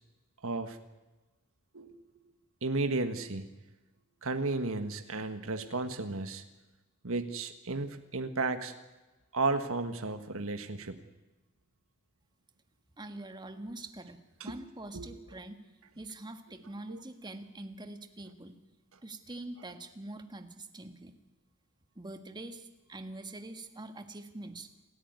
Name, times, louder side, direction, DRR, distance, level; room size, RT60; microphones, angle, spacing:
voice 1, 0.4-0.8 1.7-1.9 2.6-3.5 4.2-6.4 7.0-8.7 9.3-11.0 14.4-14.6 14.9-15.1 16.9-17.0, right 3 dB, 65° right, 8 dB, 1.6 m, -33 dB
voice 2, 13.0-14.2 14.4-15.6 15.9-18.6 19.0-21.1 21.9-24.7, right 2 dB, 20° right, 7 dB, 1.7 m, -44 dB
28.5 x 13.5 x 9.5 m, 1.1 s
head